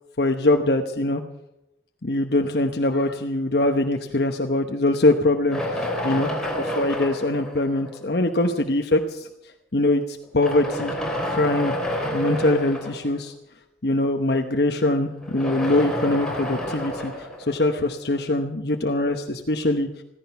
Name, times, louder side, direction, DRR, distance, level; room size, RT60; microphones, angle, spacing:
voice 1, 0.2-1.2 2.0-9.3 9.7-10.9 11.3-11.7 12.1-13.3 13.8-19.9, left 2 dB, 60° left, 5 dB, 1.0 m, -23 dB
sound 1, 5.5-8.2 9.0-9.1 10.2-13.3 15.1-18.2, equal, 5° left, 3.7 m, -29 dB
15.5 x 15.0 x 5.8 m, 0.87 s
head